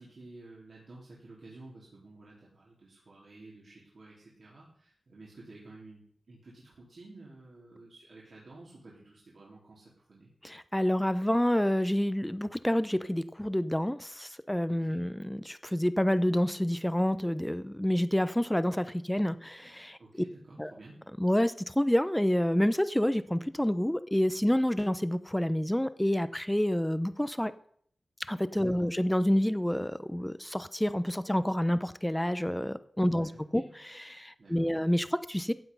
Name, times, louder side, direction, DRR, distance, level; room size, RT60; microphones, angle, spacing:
voice 1, 0.0-10.3 14.7-15.0 20.0-21.1 28.5-28.9 33.0-33.7 34.4-34.7, right 2 dB, 65° right, -6 dB, 3.7 m, -52 dB
voice 2, 10.4-20.0 20.6-20.7 21.2-27.5 28.3-33.6 34.1-35.5, equal, 5° left, 14 dB, 0.7 m, -28 dB
15.0 x 8.3 x 5.5 m, 0.62 s
wide cardioid pair, 90°, 0 cm